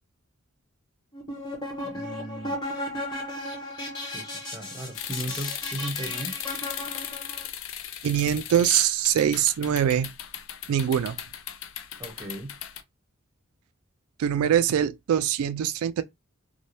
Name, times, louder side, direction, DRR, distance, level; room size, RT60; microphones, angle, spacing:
sound 1, 1.1-7.5, left 1 dB, 20° left, 1.1 m, -35 dB
voice 1, 1.8-2.6 4.0-6.3 12.0-12.6, right 1 dB, 15° right, 0.7 m, -36 dB
sound 2, 4.9-12.8, left 10 dB, 65° left, 0.4 m, -37 dB
voice 2, 8.0-10.1 10.7-11.2 14.2-16.0, right 9 dB, 85° right, 0.3 m, -23 dB
2.7 x 2.1 x 3.2 m
head